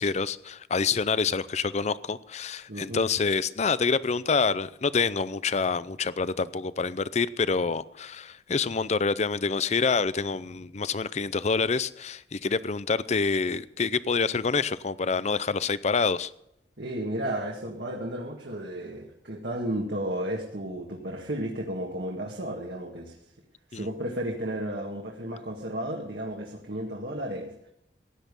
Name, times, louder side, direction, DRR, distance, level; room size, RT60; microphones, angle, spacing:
voice 1, 0.0-16.3 23.7-23.9, left 4 dB, 40° left, 17 dB, 0.5 m, -27 dB
voice 2, 2.7-3.0 16.8-23.2 23.7-27.7, right 1 dB, 65° right, -1 dB, 1.9 m, -33 dB
16.5 x 10.5 x 5.4 m, 0.79 s
head